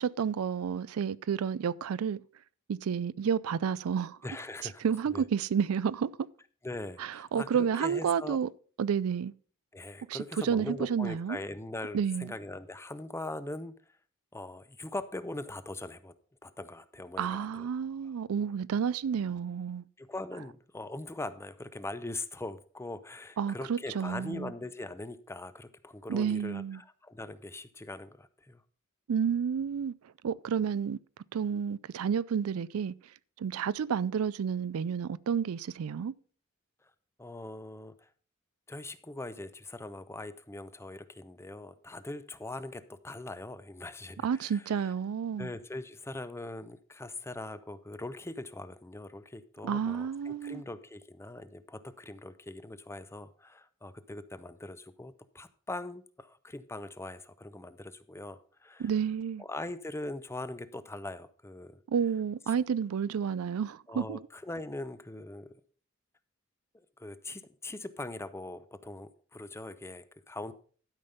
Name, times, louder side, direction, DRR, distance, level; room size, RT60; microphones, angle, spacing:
voice 1, 0.0-2.2 2.7-4.2 4.8-6.1 7.0-8.5 8.8-9.3 10.1-11.4 11.9-12.3 17.2-19.9 23.4-24.5 26.1-26.8 29.1-29.9 30.2-31.0 31.3-32.9 33.4-36.1 44.2-45.5 49.6-50.6 58.8-59.4 61.9-64.2, right 7 dB, 80° right, 0.4 m, -30 dB
voice 2, 4.2-5.3 6.6-8.4 9.7-13.7 14.3-16.1 16.4-17.7 18.0-18.1 20.0-28.6 37.2-38.1 38.7-44.9 45.4-62.6 63.9-65.4 66.7-70.5, left 2 dB, 10° left, 0.6 m, -41 dB
12.0 x 5.3 x 5.5 m
head